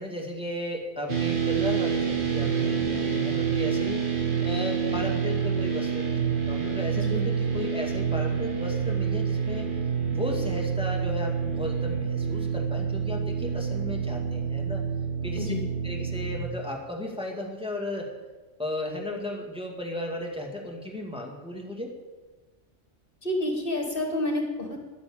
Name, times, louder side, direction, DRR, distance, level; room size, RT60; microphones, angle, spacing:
voice 1, 0.0-9.7 10.1-14.8 15.2-15.5 15.8-18.1 18.6-21.9, left 1 dB, 5° right, -1 dB, 2.0 m, -35 dB
sound 1, 1.1-16.4, right 7 dB, 45° right, 2.1 m, -27 dB
voice 2, 6.9-7.3 15.4-15.7 23.2-24.8, left 1 dB, 50° left, 3 dB, 1.9 m, -29 dB
11.0 x 9.9 x 8.6 m, 1.3 s
omnidirectional pair, 1.2 m